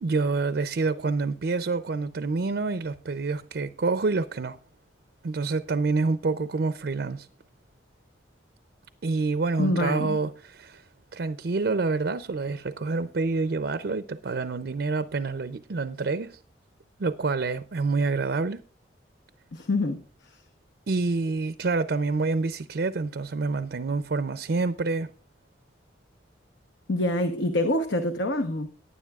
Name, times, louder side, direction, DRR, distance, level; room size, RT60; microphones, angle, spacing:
voice 1, 0.0-4.6 5.2-7.3 9.0-10.8 11.1-16.4 17.0-18.6 20.9-25.1, right 3 dB, 60° right, 0.5 m, -27 dB
voice 2, 9.6-10.2 19.5-20.0 26.9-28.7, left 1 dB, 75° left, 0.9 m, -25 dB
18.5 x 9.8 x 2.4 m
head